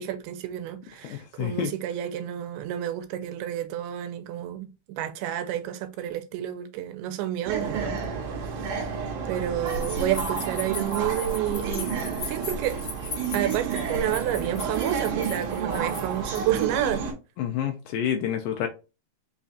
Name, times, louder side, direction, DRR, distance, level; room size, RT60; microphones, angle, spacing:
voice 1, 0.0-7.9 8.6-8.9 9.3-12.0 12.2-12.8 13.3-17.0, right 11 dB, 80° right, 2.5 m, -30 dB
voice 2, 1.0-1.7 17.4-18.7, left 9 dB, 85° left, 2.0 m, -28 dB
sound 1, 7.4-17.1, right 5 dB, 65° right, 2.1 m, -30 dB
sound 2, 9.7-16.6, left 4 dB, 50° left, 1.7 m, -39 dB
5.8 x 2.4 x 2.6 m
omnidirectional pair, 4.5 m